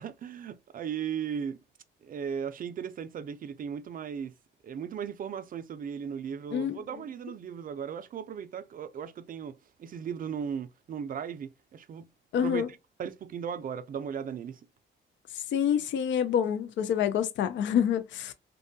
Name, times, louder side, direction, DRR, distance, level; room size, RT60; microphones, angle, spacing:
voice 1, 0.0-1.6 2.0-4.3 4.6-12.1 12.4-12.6 13.0-14.6, right 7 dB, 45° right, 0.4 m, -37 dB
voice 2, 12.3-12.7 15.5-18.3, left 8 dB, 70° left, 0.4 m, -27 dB
2.6 x 2.2 x 2.6 m
cardioid pair, 90°, 20 cm